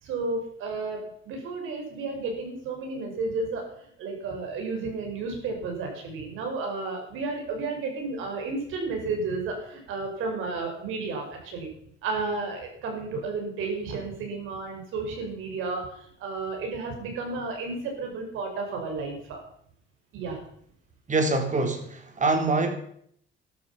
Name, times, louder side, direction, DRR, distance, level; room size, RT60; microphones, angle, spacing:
voice 1, 0.0-3.7 4.0-11.7 12.0-15.9 16.2-19.4 20.1-20.4, right 3 dB, 90° right, 2 dB, 5.8 m, -32 dB
voice 2, 21.1-22.8, right 3 dB, 40° right, 6 dB, 3.5 m, -25 dB
13.5 x 13.0 x 5.7 m, 0.66 s
cardioid pair, 90°, 20 cm